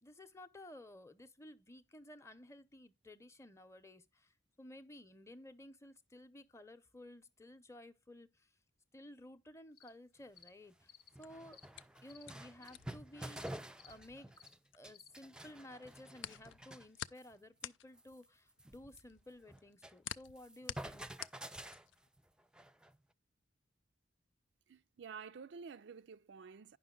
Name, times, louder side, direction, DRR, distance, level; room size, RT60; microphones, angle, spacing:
voice 1, 0.0-8.5 8.9-11.7 12.0-14.3 14.7-21.1, left 1 dB, 15° left, 0.8 m, -55 dB
sound 1, 9.8-9.9 10.4-10.5 10.9-11.1 11.5-11.7 12.1-12.2 12.6-12.8 13.4-13.5 13.8-13.9 14.3-14.5 14.9-15.1, left 8 dB, 55° left, 0.8 m, -59 dB
sound 2, 10.2-10.3 10.8-10.9 11.1-14.6 14.8-16.9 17.2-17.3 17.6-17.7 18.0-20.0 20.3-23.0, right 1 dB, 5° right, 0.4 m, -50 dB
sound 3, 11.0-15.2 15.5-22.1, left 11 dB, 80° left, 0.4 m, -49 dB
voice 2, 24.7-26.8, right 6 dB, 65° right, 0.4 m, -50 dB
10.0 x 5.8 x 3.7 m
head